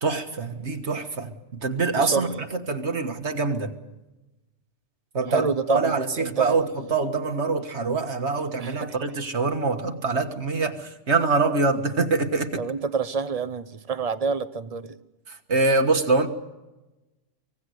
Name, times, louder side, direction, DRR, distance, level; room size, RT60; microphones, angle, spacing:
voice 1, 0.0-3.7 5.1-12.6 15.3-16.3, right 3 dB, 65° right, 6 dB, 1.9 m, -25 dB
voice 2, 2.0-2.4 5.3-6.6 8.6-8.9 12.6-15.0, right 5 dB, 35° right, 13 dB, 1.0 m, -28 dB
24.5 x 19.0 x 7.9 m, 1.1 s
omnidirectional pair, 1.2 m